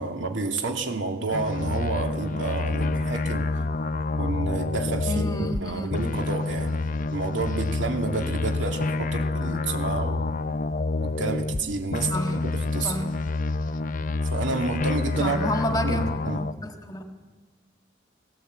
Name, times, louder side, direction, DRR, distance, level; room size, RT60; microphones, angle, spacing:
voice 1, 0.0-3.5 4.2-6.7 7.1-10.3 11.0-13.0 14.3-16.5, right 3 dB, 80° right, 3 dB, 2.5 m, -30 dB
sound 1, 1.3-5.6 5.9-11.6 11.9-16.5, left 3 dB, 45° left, 0.6 m, -28 dB
voice 2, 5.1-5.9 12.0-12.4 12.8-13.1 15.2-17.1, left 1 dB, 20° left, 5 dB, 1.7 m, -30 dB
18.5 x 18.0 x 8.2 m, 1.4 s
head